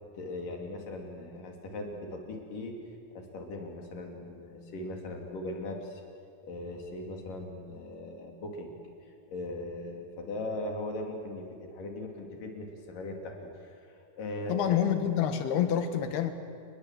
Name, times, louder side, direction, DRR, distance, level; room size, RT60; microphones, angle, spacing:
voice 1, 0.1-2.8 3.1-6.0 6.4-8.8 9.1-14.8, left 1 dB, 60° left, 2 dB, 4.6 m, -39 dB
voice 2, 14.5-16.3, left 9 dB, 80° left, 8 dB, 3.5 m, -27 dB
29.0 x 21.0 x 7.8 m, 2.5 s
omnidirectional pair, 4.5 m